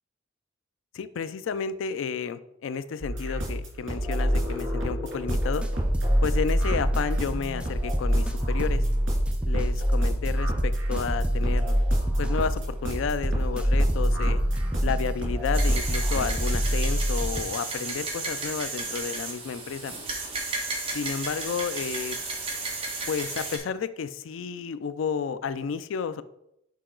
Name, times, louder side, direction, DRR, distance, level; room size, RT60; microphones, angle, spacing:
voice 1, 0.9-5.6 6.2-8.8 9.5-11.8 12.2-14.4 14.8-19.9 20.9-22.2 23.1-26.2, left 6 dB, 80° left, 13 dB, 0.4 m, -31 dB
sound 1, 3.0-16.5, equal, 80° right, 2.4 m, -28 dB
sound 2, 5.3-17.4, equal, 5° right, 0.4 m, -27 dB
sound 3, 15.5-23.6, right 3 dB, 30° right, 1.3 m, -33 dB
6.6 x 4.6 x 3.8 m, 0.80 s
head